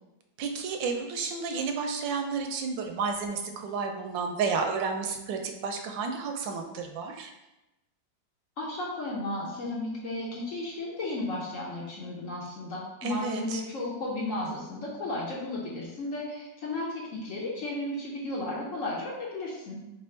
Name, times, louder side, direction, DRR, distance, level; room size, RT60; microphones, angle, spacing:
voice 1, 0.4-7.3 13.0-13.6, right 5 dB, 85° right, 4 dB, 1.3 m, -31 dB
voice 2, 8.6-19.8, left 2 dB, 55° left, -4 dB, 1.0 m, -34 dB
3.6 x 3.4 x 4.3 m, 0.98 s
omnidirectional pair, 2.0 m